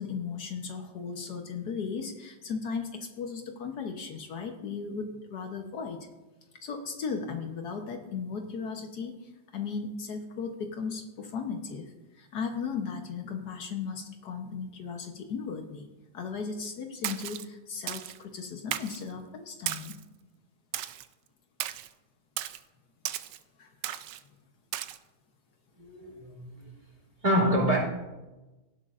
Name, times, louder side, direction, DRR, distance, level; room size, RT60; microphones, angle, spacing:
voice 1, 0.0-6.0 6.6-9.1 9.5-15.9 16.1-20.0 23.6-23.7, left 5 dB, 70° left, 4 dB, 1.5 m, -36 dB
Splash splatter, 17.0-17.4 17.9-18.2 18.7-19.0 19.7-20.0 20.7-21.1 21.6-21.9 22.4-22.6 23.0-23.4 23.8-24.2 24.7-25.0, right 12 dB, 85° right, 1.2 m, -35 dB
voice 2, 25.8-26.7 27.2-27.8, right 1 dB, 25° right, -1 dB, 2.9 m, -26 dB
17.5 x 11.0 x 2.5 m, 1.1 s
omnidirectional pair, 1.8 m